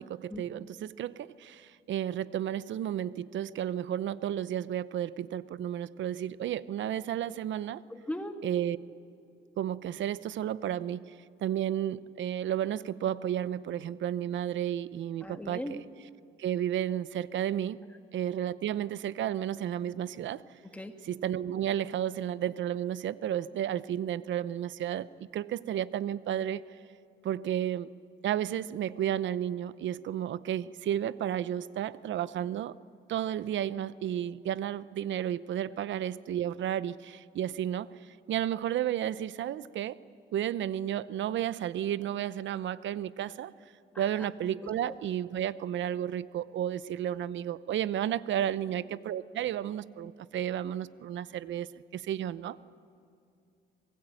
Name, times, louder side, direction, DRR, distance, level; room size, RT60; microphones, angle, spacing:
voice 1, 0.0-7.8 8.4-8.8 9.6-11.1 11.4-15.8 16.4-17.8 18.1-20.4 21.0-26.6 27.2-27.9 28.2-32.7 33.1-40.0 40.3-43.5 44.0-52.6, right 10 dB, 70° right, 16 dB, 0.8 m, -32 dB
voice 2, 7.9-8.3 15.2-15.7 20.7-20.9 43.9-44.1 44.6-44.9, left 1 dB, 5° left, 4 dB, 2.2 m, -39 dB
25.0 x 20.5 x 9.1 m, 2.5 s
cardioid pair, 90°, 20 cm